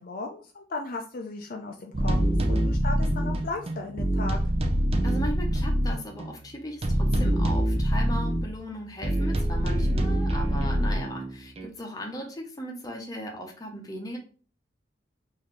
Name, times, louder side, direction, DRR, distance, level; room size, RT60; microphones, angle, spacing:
voice 1, 0.0-2.2 2.5-4.4, left 3 dB, 50° left, 2 dB, 0.5 m, -36 dB
sound 1, 1.9-6.3 6.8-8.5 9.0-11.7, right 1 dB, 35° right, 0.5 m, -25 dB
voice 2, 5.0-14.2, equal, 20° left, 1 dB, 0.8 m, -37 dB
4.0 x 2.7 x 3.2 m, 0.40 s
head